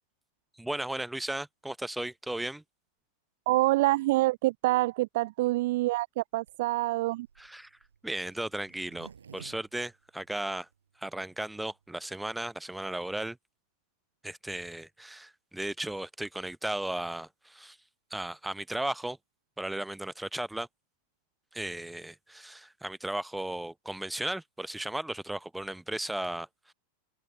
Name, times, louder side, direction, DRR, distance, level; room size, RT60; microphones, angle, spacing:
voice 1, 0.6-2.6 7.4-7.7 8.0-10.7 11.0-13.4 14.2-17.8 18.1-19.2 19.6-20.7 21.5-26.7, right 1 dB, 5° right, 0.8 m, -35 dB
voice 2, 3.5-7.3, right 19 dB, 50° right, 0.6 m, -26 dB
Zipper (clothing), 6.4-10.7 11.2-11.3 11.5-11.6 11.8-12.2, right 7 dB, 70° right, 6.4 m, -53 dB
open air
figure-of-eight pair, 90°, 0 cm